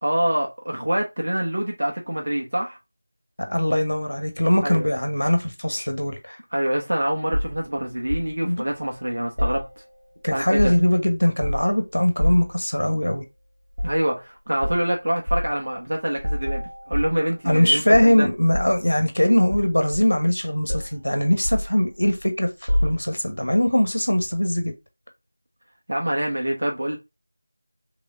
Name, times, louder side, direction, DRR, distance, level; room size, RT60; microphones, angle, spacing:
voice 1, 0.0-2.8 4.6-4.9 6.5-9.7 10.3-10.7 13.8-18.3 25.9-27.0, right 1 dB, 50° right, 0.9 m, -25 dB
voice 2, 3.5-6.4 8.4-8.6 10.2-13.2 17.5-22.5 22.8-24.7, left 1 dB, 65° left, 1.1 m, -21 dB
sound 1, 7.3-8.3 9.4-10.1 10.4-11.0 11.4-11.8 12.2-12.6 13.7-14.0 14.6-14.8 15.3-15.5 16.2-17.6 17.9-18.9 19.5-20.4 20.7-21.0 21.4-22.3 22.7-23.3 24.2-24.4, equal, 80° right, 1.7 m, -27 dB
3.4 x 3.4 x 2.5 m
figure-of-eight pair, 170°, 0 cm